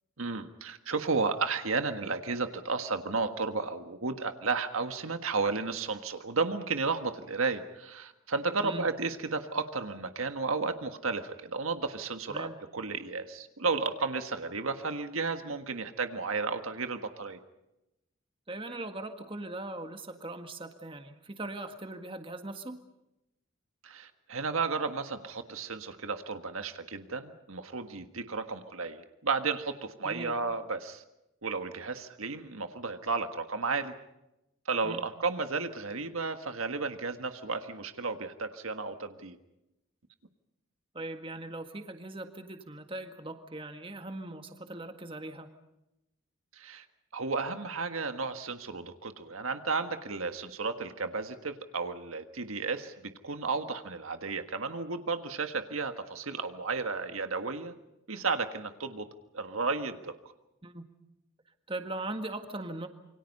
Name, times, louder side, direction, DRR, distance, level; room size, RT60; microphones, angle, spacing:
voice 1, 0.2-17.4 23.8-31.0 31.4-33.9 34.6-39.4 46.5-46.8 47.1-52.9 53.2-57.7 58.1-59.1 59.3-60.1, right 4 dB, 80° right, 7 dB, 1.6 m, -33 dB
voice 2, 18.5-22.8 30.0-30.4 34.8-35.1 40.9-45.5 60.6-60.8 61.7-62.9, right 2 dB, 25° right, 6 dB, 1.7 m, -40 dB
27.5 x 24.5 x 5.5 m, 0.90 s
head